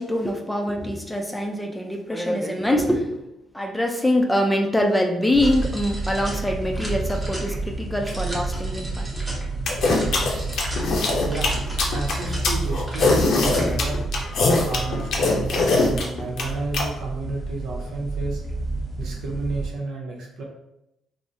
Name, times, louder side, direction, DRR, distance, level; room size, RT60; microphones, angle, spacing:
voice 1, 0.0-3.3 3.5-9.2 9.9-10.0, left 1 dB, 5° left, 2 dB, 0.4 m, -24 dB
sound 1, 5.3-19.7, right 2 dB, 10° right, 0.9 m, -29 dB
sound 2, 9.7-16.8, left 3 dB, 70° left, 0.6 m, -21 dB
voice 2, 11.2-11.6 11.9-14.1 14.6-18.4 19.0-20.4, right 3 dB, 75° right, -1 dB, 0.7 m, -32 dB
3.4 x 2.0 x 2.6 m, 0.85 s
cardioid pair, 90°, 0 cm